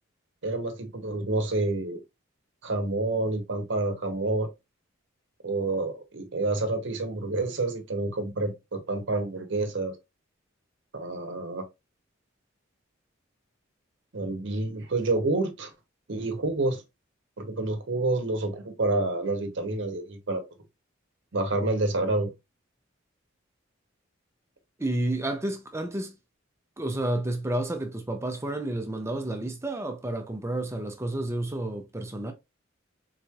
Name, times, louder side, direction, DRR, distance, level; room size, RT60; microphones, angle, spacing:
voice 1, 0.4-2.0 2.6-4.5 5.4-10.0 10.9-11.7 14.1-15.7 16.1-16.8 17.4-20.4 21.3-22.3, right 2 dB, 60° right, 0.8 m, -28 dB
voice 2, 24.8-26.2 26.8-32.3, right 1 dB, 15° right, 0.5 m, -30 dB
3.9 x 3.1 x 2.3 m
head